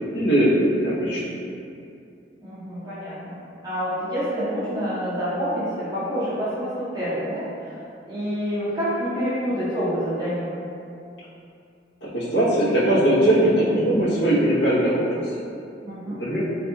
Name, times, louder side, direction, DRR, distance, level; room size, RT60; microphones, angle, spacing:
voice 1, 0.1-1.3 12.0-15.2 16.1-16.4, right 1 dB, 80° left, -10 dB, 0.9 m, -20 dB
voice 2, 2.4-3.4 3.6-7.8 8.1-10.5 15.8-16.2, equal, 25° right, -12 dB, 0.5 m, -27 dB
2.5 x 2.2 x 2.7 m, 2.5 s
head